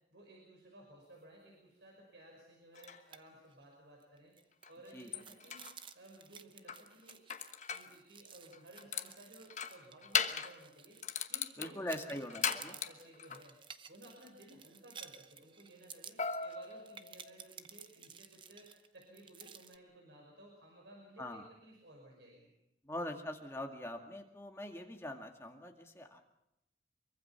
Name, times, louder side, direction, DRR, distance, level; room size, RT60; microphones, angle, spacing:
voice 1, 0.1-4.3 4.7-5.6 5.9-7.2 7.7-11.0 11.3-13.6 13.9-22.5, right 1 dB, 90° right, -1 dB, 5.6 m, -57 dB
sound 1, 2.7-3.0 4.6-4.7 5.1-5.7 6.7-7.9 8.5-9.1 9.5-10.6 11.0-13.4 16.2-17.5, left 7 dB, 40° left, 1.1 m, -38 dB
sound 2, 2.7-3.2 3.5-3.6 4.0-11.5 11.9-19.8, right 7 dB, 30° right, 0.8 m, -55 dB
voice 2, 11.6-12.7 21.2-21.5 22.8-26.2, left 1 dB, 15° left, 3 dB, 2.1 m, -43 dB
24.5 x 23.5 x 5.9 m, 0.86 s
head